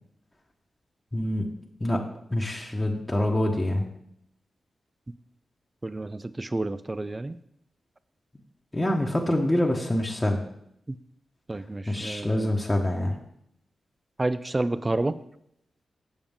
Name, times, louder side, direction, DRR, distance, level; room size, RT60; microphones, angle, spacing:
voice 1, 1.1-1.5 1.8-2.0 2.3-3.8 8.7-10.4 11.9-13.2, left 1 dB, 20° left, -1 dB, 1.1 m, -25 dB
voice 2, 5.8-7.4 10.9-11.0 11.5-12.5 14.2-15.2, right 2 dB, 30° right, 14 dB, 0.4 m, -29 dB
7.1 x 7.0 x 3.6 m, 0.75 s
supercardioid pair, 45°, 0 cm